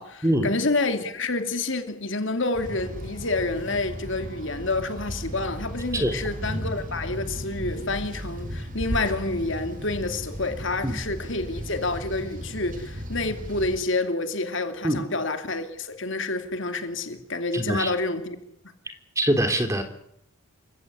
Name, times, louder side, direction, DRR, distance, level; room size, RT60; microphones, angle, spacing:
voice 1, 0.0-18.4, left 2 dB, 55° left, 2.9 m, -28 dB
sound 1, 2.5-13.8, equal, 35° right, 4.4 m, -35 dB
voice 2, 17.5-17.9 19.2-19.8, right 1 dB, 15° right, 3.1 m, -23 dB
29.0 x 16.5 x 9.8 m
head